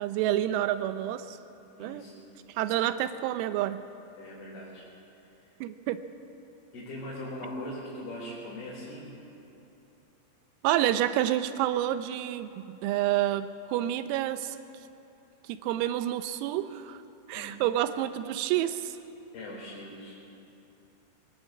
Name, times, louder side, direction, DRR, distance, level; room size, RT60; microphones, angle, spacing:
voice 1, 0.0-1.4 1.8-2.0 2.5-3.8 5.6-6.0 10.6-14.6 15.5-17.0 17.3-19.0, right 12 dB, 90° right, 11 dB, 3.6 m, -29 dB
voice 2, 1.8-2.1 4.2-4.9 5.4-5.5 6.7-9.1 17.3-17.6 19.3-20.2, left 1 dB, 50° left, -7 dB, 6.1 m, -40 dB
23.0 x 18.5 x 8.5 m, 2.9 s
omnidirectional pair, 6.0 m